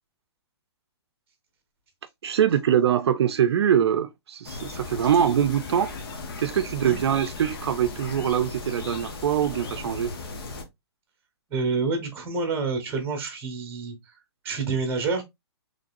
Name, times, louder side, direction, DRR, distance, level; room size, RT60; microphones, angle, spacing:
voice 1, 2.2-5.9 6.4-10.1, right 9 dB, 70° right, 0.5 m, -23 dB
sound 1, 4.4-10.6, left 3 dB, 55° left, 1.0 m, -37 dB
voice 2, 11.5-14.2 14.4-15.2, right 4 dB, 15° right, 1.2 m, -28 dB
3.9 x 3.2 x 2.5 m
hypercardioid pair, 160°, 14 cm